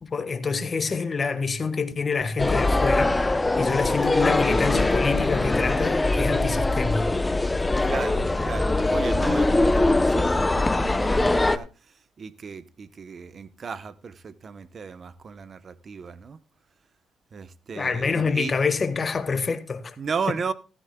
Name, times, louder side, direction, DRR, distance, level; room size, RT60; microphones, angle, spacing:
voice 1, 0.0-7.1 17.7-20.0, left 5 dB, 35° left, 1.4 m, -27 dB
sound 1, 2.4-11.6, left 2 dB, 15° left, 0.6 m, -22 dB
voice 2, 7.8-11.7 12.2-16.4 17.3-18.5 20.0-20.5, right 5 dB, 45° right, 0.8 m, -35 dB
15.5 x 14.0 x 2.2 m
cardioid pair, 90°, 0 cm